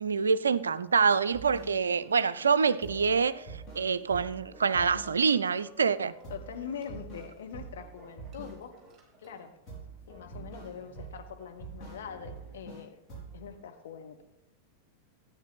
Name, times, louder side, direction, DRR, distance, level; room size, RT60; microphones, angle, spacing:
voice 1, 0.0-6.1, right 5 dB, 70° right, 0.4 m, -26 dB
sound 1, 1.3-2.1 2.4-2.5 2.8-5.5 5.8-5.9 6.2-8.9 9.2-12.8 13.1-13.5, right 4 dB, 25° left, 5.2 m, -46 dB
Laughter, 1.4-9.5, right 2 dB, 15° right, 4.0 m, -56 dB
voice 2, 6.3-8.8 9.2-9.5 10.1-13.0 13.3-14.2, left 7 dB, 60° left, 1.2 m, -43 dB
13.5 x 9.0 x 4.0 m
figure-of-eight pair, 90°, 0 cm